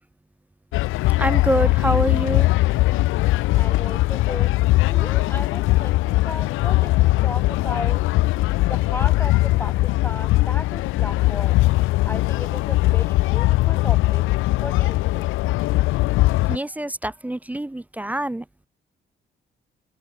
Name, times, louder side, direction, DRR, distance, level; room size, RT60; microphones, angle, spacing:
sound 1, 0.7-16.6, left 19 dB, 90° left, 0.5 m, -20 dB
voice 1, 1.2-2.5 16.5-18.4, right 1 dB, 10° right, 0.5 m, -25 dB
voice 2, 3.6-4.5 4.8-8.0 8.7-11.6 12.0-14.2 14.6-15.3, left 2 dB, 10° left, 2.0 m, -35 dB
open air
cardioid pair, 90°, 20 cm